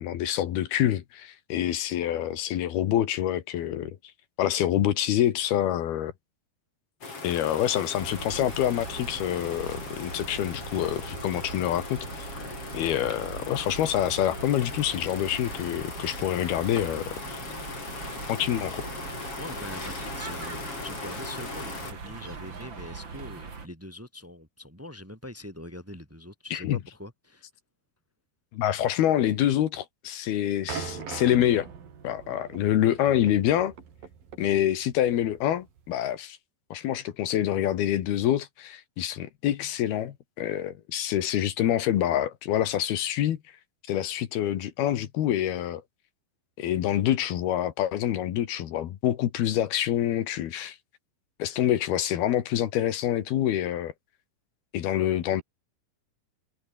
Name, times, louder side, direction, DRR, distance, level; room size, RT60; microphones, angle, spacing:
voice 1, 0.0-4.0 4.4-6.1 7.2-12.3 12.7-17.4 18.3-18.9 26.5-26.8 28.5-31.7 32.0-33.7 34.4-36.4 36.7-43.4 43.9-45.8 46.6-50.8 51.4-53.9 54.7-55.4, left 11 dB, 75° left, 3.5 m, -26 dB
sound 1, 7.0-21.9, left 4 dB, 35° left, 5.9 m, -39 dB
sound 2, 8.0-23.7, right 5 dB, 35° right, 3.2 m, -41 dB
voice 2, 19.4-27.5, left 1 dB, 5° right, 2.6 m, -43 dB
sound 3, 30.7-36.1, right 7 dB, 65° right, 5.3 m, -41 dB
omnidirectional pair, 4.5 m